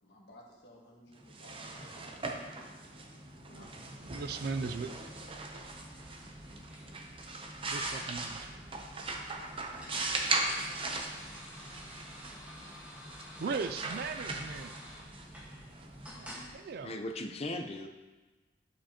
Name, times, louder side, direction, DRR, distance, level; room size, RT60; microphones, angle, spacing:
voice 1, 0.0-2.6 3.4-3.9, left 1 dB, 65° left, -2 dB, 1.6 m, -57 dB
sound 1, 1.2-16.8, right 2 dB, 30° right, 0.7 m, -39 dB
sound 2, 4.0-16.5, equal, 10° right, 1.4 m, -52 dB
voice 2, 4.0-4.9 7.7-8.6 13.4-14.7 16.1-17.0, right 4 dB, 60° right, 11 dB, 0.3 m, -38 dB
voice 3, 16.8-17.9, left 1 dB, 35° left, 4 dB, 0.6 m, -37 dB
11.0 x 4.9 x 2.9 m, 1.2 s
head